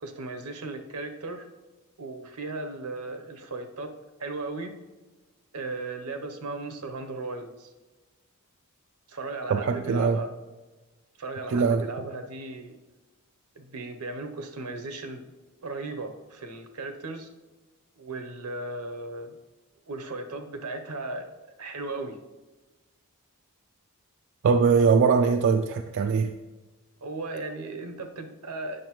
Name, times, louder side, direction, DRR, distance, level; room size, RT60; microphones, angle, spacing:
voice 1, 0.0-1.5 2.0-4.8 5.5-7.7 9.1-10.3 11.2-12.8 13.6-15.3 15.6-17.3 18.0-19.4 19.9-22.2 26.0-26.1 27.0-28.9, right 2 dB, 80° right, 7 dB, 0.8 m, -36 dB
voice 2, 9.5-10.2 11.5-11.9 24.4-26.3, right 5 dB, 55° right, 6 dB, 0.3 m, -22 dB
8.7 x 6.3 x 3.0 m, 1.2 s
head